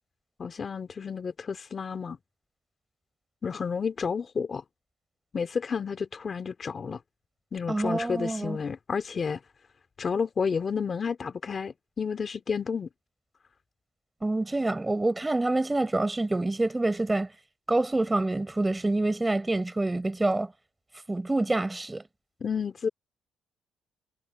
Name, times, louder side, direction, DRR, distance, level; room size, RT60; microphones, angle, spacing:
voice 1, 0.4-2.2 3.4-4.6 5.3-7.0 7.5-9.4 10.0-12.9 22.4-22.9, left 6 dB, 40° left, 2.6 m, -31 dB
voice 2, 7.7-8.6 14.2-17.3 17.7-20.5 21.1-22.0, right 2 dB, 15° right, 7.1 m, -26 dB
cardioid pair, 90°, 0 cm